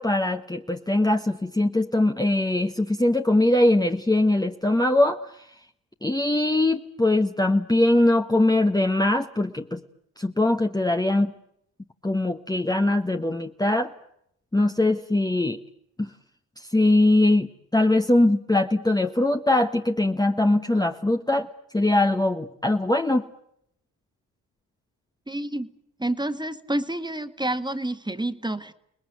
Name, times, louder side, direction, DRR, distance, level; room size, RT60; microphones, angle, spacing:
voice 1, 0.0-5.2 6.0-9.8 10.2-11.3 12.0-13.9 14.5-15.6 16.0-16.1 16.7-21.5 21.7-23.3, left 1 dB, 10° left, 5 dB, 1.2 m, -21 dB
voice 2, 25.3-25.7 26.0-28.7, right 1 dB, 10° right, 10 dB, 1.8 m, -29 dB
30.0 x 19.5 x 9.4 m, 0.76 s
supercardioid pair, 55°, 40 cm